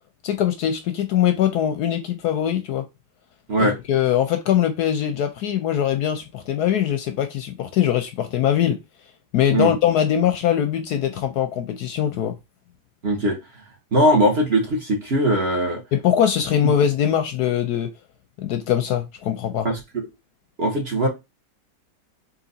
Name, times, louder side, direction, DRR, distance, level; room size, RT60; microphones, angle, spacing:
voice 1, 0.2-2.8 3.6-8.8 9.3-12.3 15.9-17.9 18.4-19.7, left 10 dB, 70° left, 1.0 m, -22 dB
voice 2, 13.0-13.4 13.9-15.8 19.6-20.1 20.6-21.1, right 1 dB, 40° right, 1.3 m, -20 dB
3.9 x 2.8 x 3.9 m
omnidirectional pair, 1.9 m